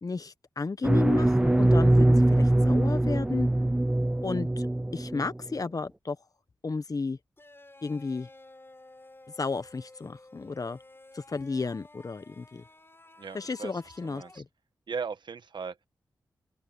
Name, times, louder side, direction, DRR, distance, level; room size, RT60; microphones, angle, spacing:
voice 1, 0.0-3.5 4.2-6.2 6.6-7.2 7.8-8.3 9.4-10.8 11.1-12.6 13.3-14.4, left 4 dB, 45° left, 1.3 m, -33 dB
sound 1, 0.8-5.4, right 1 dB, 10° right, 0.4 m, -22 dB
sound 2, 7.4-14.4, left 2 dB, 30° left, 4.8 m, -53 dB
voice 2, 13.2-14.4 14.9-15.8, right 5 dB, 65° right, 1.4 m, -38 dB
open air
cardioid pair, 45°, 8 cm